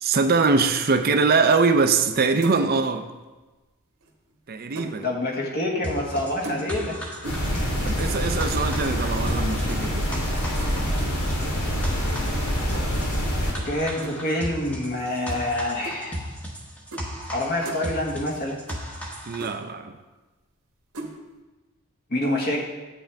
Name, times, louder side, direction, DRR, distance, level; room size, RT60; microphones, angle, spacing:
voice 1, 0.0-3.0 4.5-5.1 7.8-10.1 19.3-19.9, right 4 dB, 45° right, 8 dB, 0.5 m, -22 dB
sound 1, 1.9-2.1 2.4-2.8 4.0-5.0 6.4-6.9 7.2-7.6 8.5-8.7 9.3-9.5 10.6-10.9 12.7-12.9 14.0-14.2 15.3-15.4 15.8-16.0 16.9-17.1 17.4-17.8 18.7-18.8 19.1-19.2 19.4-19.5 20.9-21.1, right 2 dB, 85° right, 1.4 m, -36 dB
voice 2, 5.0-7.0 7.5-7.7 13.6-16.3 17.3-18.6 22.1-22.6, left 1 dB, 45° left, -1 dB, 1.6 m, -27 dB
sound 2, 5.8-19.5, equal, 5° left, 1.0 m, -35 dB
sound 3, 7.2-13.5, equal, 80° left, 2.3 m, -26 dB
8.9 x 8.4 x 3.5 m, 1.2 s
head